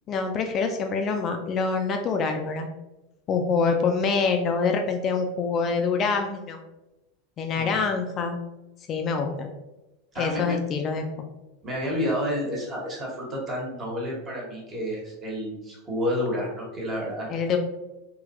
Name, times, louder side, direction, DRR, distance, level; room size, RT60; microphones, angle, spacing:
voice 1, 0.1-2.7 3.3-6.6 7.4-8.4 8.9-9.5 10.2-11.1 17.3-17.6, left 5 dB, 35° left, 4 dB, 0.3 m, -25 dB
voice 2, 10.1-10.5 11.6-17.3, equal, 30° right, -3 dB, 1.2 m, -30 dB
3.2 x 2.7 x 2.4 m, 1.0 s
figure-of-eight pair, 85°, 0 cm